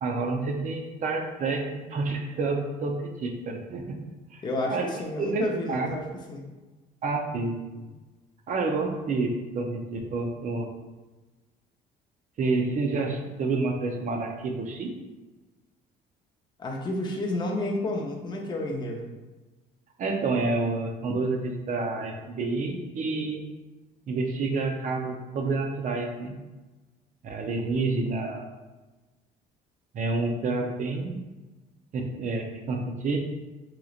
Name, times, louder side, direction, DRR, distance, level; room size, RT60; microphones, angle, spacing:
voice 1, 0.0-4.0 4.3-4.4 4.7-5.9 7.0-7.9 8.5-10.7 12.4-14.9 20.0-23.4 24.1-26.4 27.2-28.5 29.9-31.2 31.9-33.2, right 3 dB, 50° right, 3 dB, 0.6 m, -29 dB
voice 2, 4.4-6.5 16.6-19.1, left 1 dB, 25° left, -1 dB, 0.6 m, -31 dB
3.8 x 3.0 x 2.4 m, 1.2 s
cardioid pair, 110°, 17 cm